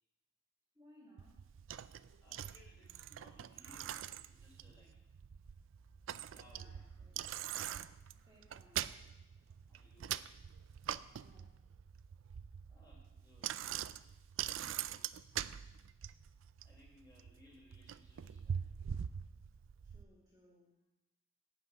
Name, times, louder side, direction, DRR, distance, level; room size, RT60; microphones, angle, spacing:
voice 1, 0.7-1.5 6.4-9.0 9.4-9.5 11.1-11.6 14.4-15.1 19.8-20.7, equal, 20° right, -5 dB, 2.6 m, -65 dB
Bicycle, 1.2-20.0, right 9 dB, 75° right, 0.4 m, -44 dB
voice 2, 2.2-4.9 6.3-6.7 9.7-10.2 12.7-13.7 16.1-16.2 16.6-18.8, left 1 dB, 20° left, -3 dB, 4.0 m, -64 dB
12.0 x 5.9 x 8.9 m, 0.99 s
head